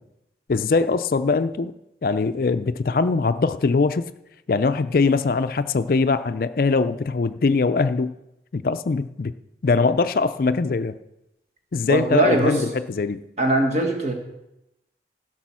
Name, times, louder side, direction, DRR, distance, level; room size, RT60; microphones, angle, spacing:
voice 1, 0.5-1.7 2.0-4.0 4.5-8.1 8.5-9.3 9.6-11.0 11.7-13.2, left 4 dB, 50° left, 11 dB, 0.4 m, -22 dB
voice 2, 11.9-12.6 13.4-14.1, right 1 dB, 40° right, 2 dB, 1.8 m, -21 dB
16.0 x 6.1 x 6.1 m, 0.90 s
head